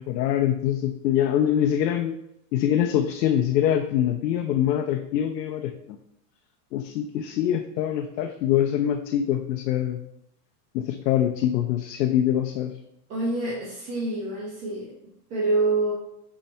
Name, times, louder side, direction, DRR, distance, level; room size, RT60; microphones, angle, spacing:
voice 1, 0.0-2.2 2.5-6.0 6.7-10.0 10.7-12.7, left 10 dB, 85° left, 5 dB, 0.6 m, -24 dB
voice 2, 13.1-14.9 15.3-15.9, right 2 dB, 15° right, -6 dB, 0.4 m, -26 dB
4.6 x 2.6 x 4.1 m, 0.79 s
supercardioid pair, 150°, 48 cm